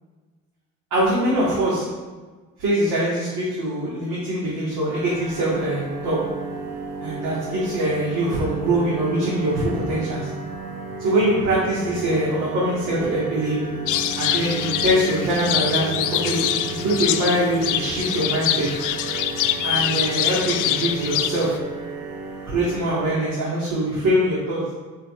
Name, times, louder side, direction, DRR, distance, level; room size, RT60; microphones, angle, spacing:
voice 1, 0.9-1.8 2.6-6.2 7.0-10.3 11.0-13.6 14.2-18.7 19.6-21.5 22.4-24.6, right 1 dB, 85° right, -8 dB, 2.3 m, -23 dB
sound 1, 4.9-23.1, right 4 dB, 55° right, 1.4 m, -33 dB
sound 2, 13.9-21.6, left 11 dB, 90° left, 0.5 m, -25 dB
9.7 x 4.8 x 3.3 m, 1.3 s
cardioid pair, 90°, 30 cm